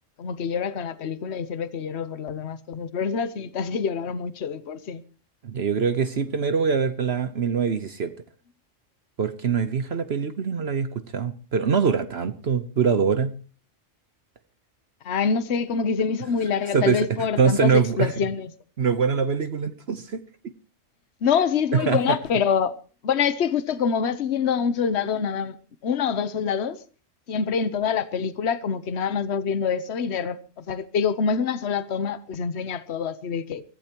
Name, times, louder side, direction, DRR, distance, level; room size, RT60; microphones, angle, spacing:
voice 1, 0.2-5.0 15.0-18.5 21.2-25.6 25.8-26.8 27.3-33.6, left 6 dB, 60° left, 1.2 m, -26 dB
voice 2, 5.4-8.1 9.2-13.3 16.7-17.1 17.4-18.2 18.8-20.5 21.7-22.2, right 6 dB, 55° right, 1.2 m, -23 dB
24.0 x 15.5 x 3.0 m
omnidirectional pair, 1.3 m